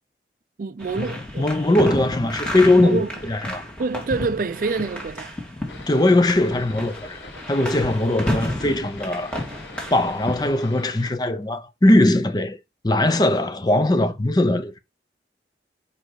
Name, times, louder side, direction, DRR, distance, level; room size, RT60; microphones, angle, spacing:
voice 1, 0.6-1.4 2.8-3.1 3.8-5.4, right 4 dB, 50° right, 0.4 m, -26 dB
sound 1, 0.8-10.5, left 1 dB, 5° left, 1.7 m, -31 dB
voice 2, 1.4-3.6 5.9-7.2 7.5-9.3 9.9-12.6 12.8-14.8, left 1 dB, 25° left, 0.5 m, -20 dB
sound 2, 5.7-11.1, left 3 dB, 85° left, 1.2 m, -43 dB
4.9 x 4.7 x 4.7 m
head